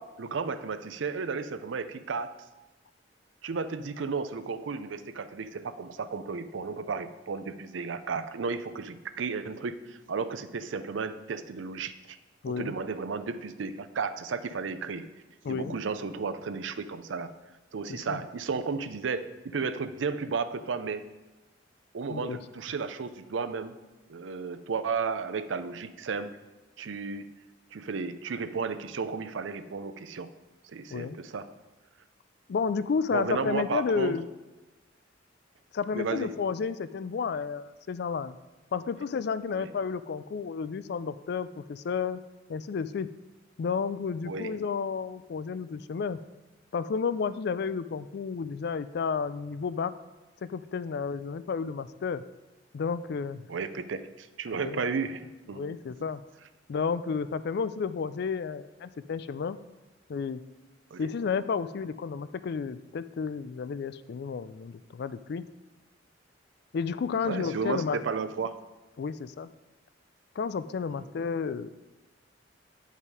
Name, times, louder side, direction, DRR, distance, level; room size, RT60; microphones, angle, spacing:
voice 1, 0.0-2.3 3.4-12.2 12.5-15.1 15.5-17.3 17.7-21.1 21.9-23.7 24.1-26.4 26.8-27.3 27.7-30.3 30.7-31.5 33.1-34.2 35.9-36.3 39.5-39.7 44.3-44.5 53.5-55.2 55.5-55.6 60.9-61.1 67.2-68.6 70.8-70.9, right 5 dB, 85° right, 12 dB, 0.5 m, -33 dB
voice 2, 12.4-12.7 15.4-15.8 17.9-18.2 22.1-22.4 30.9-31.2 32.5-34.3 35.7-38.4 38.7-42.2 42.5-43.1 43.6-46.2 46.7-49.9 50.4-52.2 52.7-53.5 54.5-54.8 55.5-56.2 56.7-59.6 60.1-60.4 61.0-65.4 66.7-68.0 69.0-69.5 70.4-71.7, left 5 dB, 60° left, 14 dB, 0.3 m, -31 dB
9.0 x 5.6 x 4.8 m, 1.1 s
head